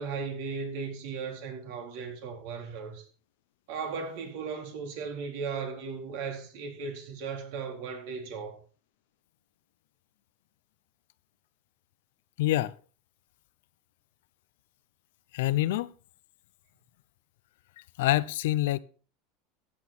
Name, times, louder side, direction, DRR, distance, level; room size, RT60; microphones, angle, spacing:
voice 1, 0.0-3.1 3.7-8.6, right 5 dB, 65° right, 4.1 m, -36 dB
voice 2, 12.4-12.7 15.3-15.9 18.0-18.8, left 15 dB, 80° left, 0.7 m, -26 dB
14.5 x 9.7 x 4.3 m
supercardioid pair, 145°, 0 cm